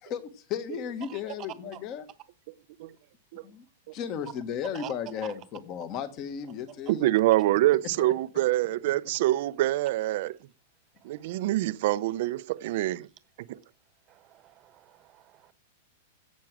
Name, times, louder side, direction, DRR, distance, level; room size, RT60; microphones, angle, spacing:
voice 1, 0.0-2.1 3.4-3.6 3.9-7.1 8.0-8.1, left 8 dB, 30° left, 1.5 m, -35 dB
voice 2, 6.9-10.3 11.0-13.1 13.5-13.6, right 15 dB, 50° right, 0.6 m, -25 dB
voice 3, 14.1-15.5, right 13 dB, 25° right, 1.2 m, -47 dB
16.5 x 6.2 x 6.2 m
supercardioid pair, 165°, 0 cm